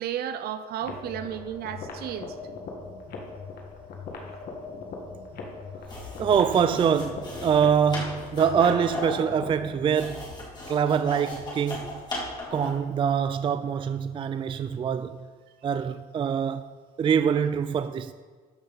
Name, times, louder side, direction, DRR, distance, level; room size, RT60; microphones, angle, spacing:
voice 1, 0.0-2.4, right 10 dB, 65° right, 0.7 m, -33 dB
sound 1, 0.8-9.8, left 4 dB, 65° left, 1.6 m, -40 dB
sound 2, 5.8-12.9, left 1 dB, 25° left, 2.7 m, -37 dB
voice 2, 6.2-10.2 10.7-12.0 12.5-15.2 15.6-16.7 17.0-18.1, right 7 dB, 30° right, 0.3 m, -24 dB
13.0 x 5.6 x 4.0 m
cardioid pair, 110°, 17 cm